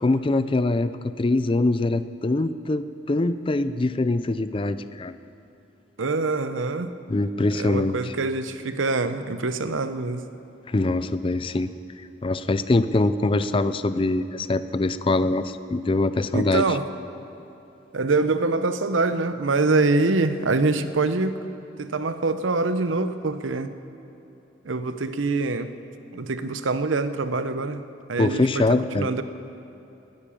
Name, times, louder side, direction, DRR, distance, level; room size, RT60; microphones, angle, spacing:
voice 1, 0.0-5.1 7.1-8.1 10.7-11.7 12.2-16.8 28.2-29.1, left 2 dB, 25° left, 13 dB, 0.4 m, -23 dB
voice 2, 6.0-6.9 7.4-10.2 16.3-16.9 17.9-21.4 21.8-23.7 24.7-25.7 26.1-27.8 28.1-28.7 29.0-29.2, right 3 dB, 90° right, 11 dB, 0.8 m, -24 dB
19.0 x 9.9 x 7.1 m, 2.9 s
head